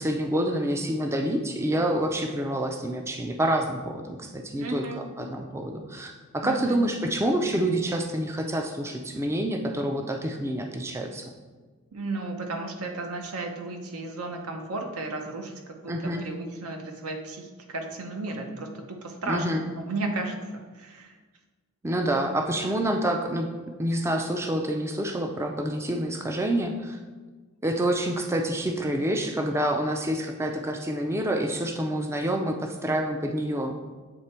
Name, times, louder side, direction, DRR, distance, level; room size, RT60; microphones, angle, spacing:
voice 1, 0.0-4.9 5.2-11.2 15.9-16.2 19.3-19.6 21.8-23.5 23.8-27.0 27.6-33.7, right 1 dB, 10° right, 3 dB, 0.4 m, -27 dB
voice 2, 4.6-5.1 6.4-6.8 11.9-19.5 19.8-21.2, right 2 dB, 80° right, 4 dB, 0.8 m, -34 dB
8.0 x 3.3 x 4.4 m, 1.3 s
head